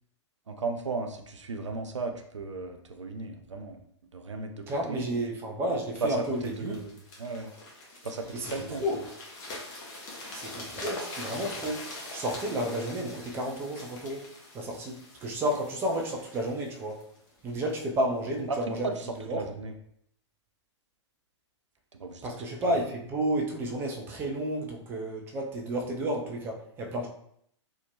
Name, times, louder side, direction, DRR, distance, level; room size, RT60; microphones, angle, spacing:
voice 1, 0.5-3.8 4.1-5.1 6.0-6.3 6.6-6.9 7.2-7.5 8.0-8.8 18.5-18.6 18.8-18.9 19.3-19.7 22.0-22.2 22.7-22.8, right 3 dB, 80° right, 6 dB, 0.4 m, -35 dB
voice 2, 4.7-6.8 8.3-9.0 10.3-11.9 12.1-14.3 14.5-17.0 17.4-19.0 19.3-19.4 22.2-27.1, right 1 dB, 15° right, 0 dB, 0.4 m, -31 dB
sound 1, 6.0-17.8 18.4-18.6, left 2 dB, 40° left, 0.8 m, -43 dB
2.7 x 2.1 x 2.7 m, 0.68 s
figure-of-eight pair, 110°, 15 cm